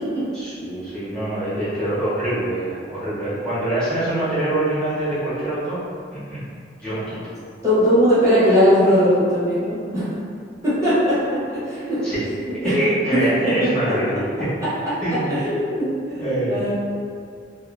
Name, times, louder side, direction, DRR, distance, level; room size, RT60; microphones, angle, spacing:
voice 1, 0.3-5.8 6.1-6.4 6.8-7.2 12.0-12.3 12.6-14.5 15.0-15.4 16.1-16.6, right 1 dB, 5° left, -13 dB, 1.2 m, -24 dB
voice 2, 7.6-10.1 10.6-11.2 11.5-12.0 12.6-12.8 13.1-13.2 13.6-13.7 14.6-14.7 15.3-16.7, equal, 15° right, -12 dB, 0.9 m, -19 dB
2.6 x 2.5 x 2.5 m, 2.2 s
head